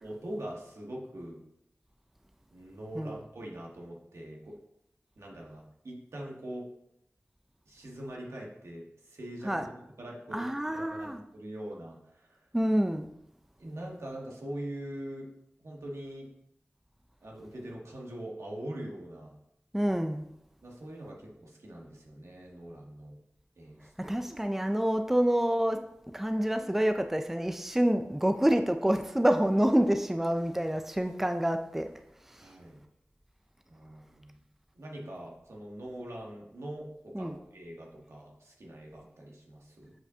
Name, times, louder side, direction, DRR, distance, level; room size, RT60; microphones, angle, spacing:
voice 1, 0.0-1.4 2.5-4.5 5.2-6.7 7.7-12.4 13.6-15.3 15.6-16.3 17.2-19.3 20.6-23.2 23.6-24.2 32.4-32.8 33.7-34.4 34.7-39.9, right 1 dB, 85° right, -2 dB, 1.3 m, -43 dB
voice 2, 10.3-11.2 12.5-13.1 19.7-20.3 24.0-25.8 26.1-31.9 32.3-32.4 37.1-37.4, equal, 5° right, 7 dB, 0.4 m, -27 dB
7.6 x 4.9 x 2.7 m, 0.81 s
wide cardioid pair, 70°, 5 cm